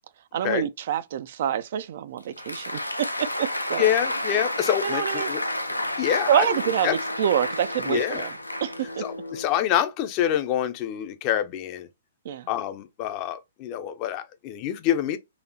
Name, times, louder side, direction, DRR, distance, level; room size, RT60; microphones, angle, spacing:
voice 1, 0.3-3.9 4.8-5.3 6.3-8.3 8.6-9.0 12.3-12.5, right 9 dB, 50° right, 0.3 m, -27 dB
Applause, 2.2-9.3, left 1 dB, 85° left, 0.5 m, -30 dB
voice 2, 3.8-5.4 6.0-6.5 6.8-7.0 7.9-8.3 9.0-11.9 12.5-15.2, left 11 dB, 30° left, 0.5 m, -26 dB
sound 1, 4.4-9.4, left 1 dB, 70° left, 0.9 m, -44 dB
4.1 x 2.7 x 2.7 m
figure-of-eight pair, 115°, 0 cm